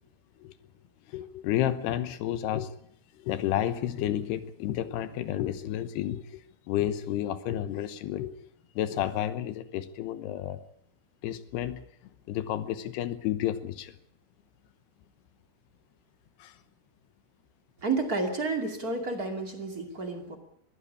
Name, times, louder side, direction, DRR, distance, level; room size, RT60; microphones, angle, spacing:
voice 1, 1.1-2.7 3.2-6.4 6.7-8.3 8.8-10.6 11.2-11.8 12.3-14.0 16.4-16.6, left 12 dB, 70° left, 2.7 m, -31 dB
voice 2, 17.8-20.4, right 3 dB, 30° right, 1.8 m, -31 dB
21.5 x 16.0 x 8.5 m
omnidirectional pair, 5.5 m